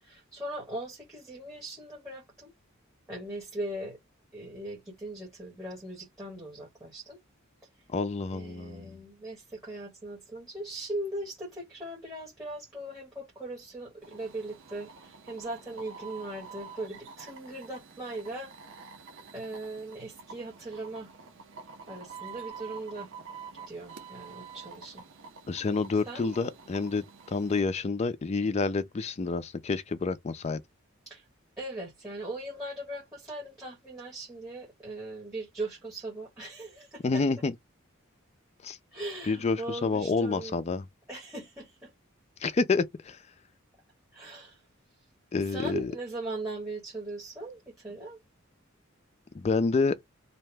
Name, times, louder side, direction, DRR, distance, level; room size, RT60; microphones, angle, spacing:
voice 1, 0.0-2.5 3.1-4.0 4.3-7.2 8.3-18.5 19.3-21.1 21.9-23.1 23.7-25.0 26.1-26.3 31.1-31.2 31.6-37.2 38.9-40.6 41.1-41.9 44.1-44.6 45.4-48.2, right 1 dB, 15° right, 1.2 m, -39 dB
voice 2, 7.9-8.9 25.5-30.6 37.0-37.5 38.6-38.8 39.3-40.8 42.4-43.2 45.3-45.9 49.3-50.0, left 4 dB, 30° left, 0.4 m, -28 dB
sound 1, 14.0-27.6, right 5 dB, 60° right, 0.6 m, -48 dB
2.8 x 2.1 x 3.2 m
head